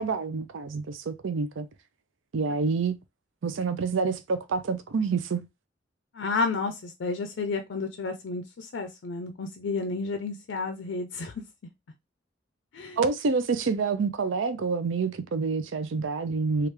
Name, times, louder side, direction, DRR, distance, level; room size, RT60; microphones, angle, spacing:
voice 1, 0.0-1.7 2.3-2.9 3.4-5.5 13.0-16.7, right 4 dB, 75° right, 0.5 m, -27 dB
voice 2, 6.1-11.3 12.7-13.0, left 3 dB, 65° left, 0.4 m, -31 dB
3.3 x 2.4 x 3.1 m
head